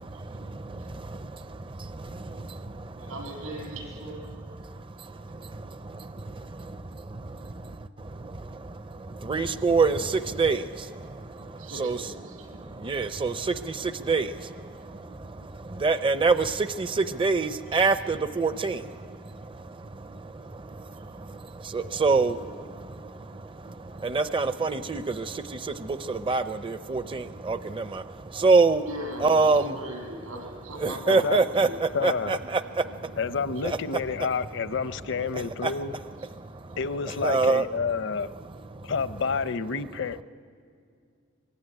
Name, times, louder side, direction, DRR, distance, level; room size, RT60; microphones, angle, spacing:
voice 1, 0.0-3.1 4.6-28.9 29.2-29.8 30.8-33.2 33.6-34.3 34.6-34.7 35.0-35.1 35.3-37.7 38.2-38.9, right 4 dB, 25° right, 11 dB, 0.6 m, -28 dB
voice 2, 3.0-4.3 11.6-12.8 17.7-17.8 28.8-31.8, equal, 80° right, -1 dB, 7.5 m, -40 dB
voice 3, 31.1-31.4 31.9-32.4 33.2-35.9 36.8-38.3 38.8-40.2, left 5 dB, 60° left, 13 dB, 0.7 m, -29 dB
23.5 x 22.5 x 9.9 m, 2.3 s
head